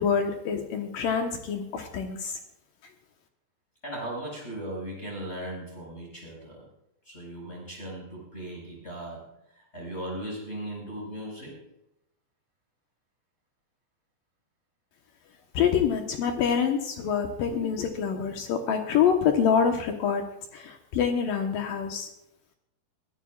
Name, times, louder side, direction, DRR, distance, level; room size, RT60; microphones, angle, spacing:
voice 1, 0.0-2.4 15.5-20.2 20.5-22.1, left 7 dB, 70° left, 4 dB, 2.3 m, -26 dB
voice 2, 3.8-6.7 7.0-11.6, right 1 dB, 15° left, -4 dB, 5.5 m, -38 dB
22.5 x 14.5 x 2.4 m, 0.85 s
omnidirectional pair, 5.0 m